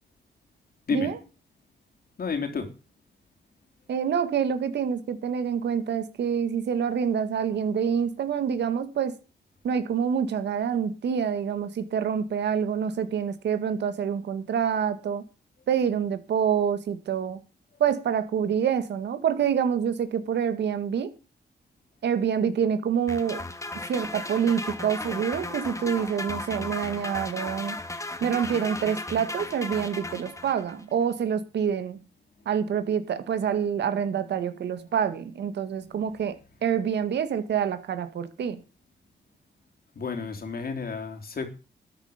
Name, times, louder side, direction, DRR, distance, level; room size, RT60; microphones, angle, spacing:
voice 1, 2.2-2.7 39.9-41.5, left 5 dB, 60° left, 3.5 m, -31 dB
voice 2, 3.9-9.2 9.6-15.2 15.7-17.4 17.8-21.1 22.0-23.4 23.9-27.8 28.2-32.0 32.5-36.4 36.6-38.6, right 7 dB, 80° right, 1.9 m, -27 dB
sound 1, 23.1-30.8, left 2 dB, 15° left, 2.1 m, -35 dB
13.0 x 10.5 x 5.2 m
cardioid pair, 70°, 18 cm